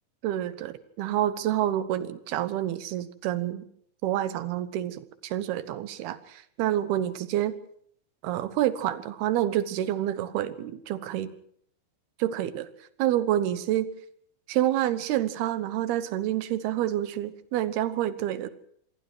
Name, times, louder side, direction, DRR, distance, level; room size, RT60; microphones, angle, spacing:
voice 1, 0.2-3.6 4.0-7.6 8.2-11.3 12.2-12.7 13.0-13.9 14.5-18.5, right 12 dB, 85° right, 14 dB, 3.2 m, -28 dB
27.5 x 22.0 x 4.7 m, 0.64 s
omnidirectional pair, 4.4 m